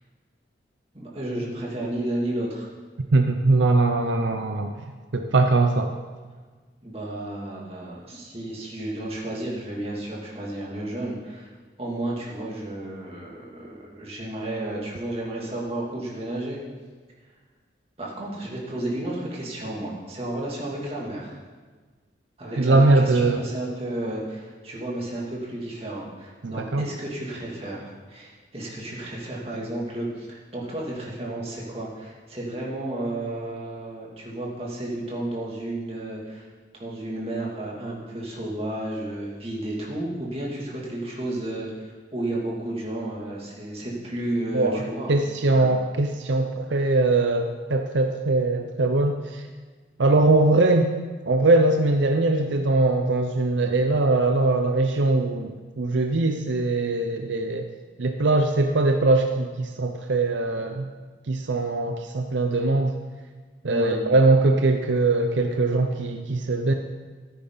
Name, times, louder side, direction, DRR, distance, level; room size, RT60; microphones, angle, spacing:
voice 1, 0.9-2.7 6.8-11.5 11.8-16.6 18.0-21.4 22.4-36.5 36.7-45.2 45.5-45.7 63.7-64.0, right 1 dB, 30° right, -4 dB, 2.5 m, -32 dB
voice 2, 3.1-4.7 5.1-5.9 22.6-23.4 26.4-26.9 44.5-49.5 50.0-50.9 51.2-57.7 58.0-60.9 61.3-63.0 63.6-66.7, right 2 dB, 75° right, 5 dB, 0.6 m, -21 dB
14.0 x 9.5 x 4.0 m, 1.4 s
head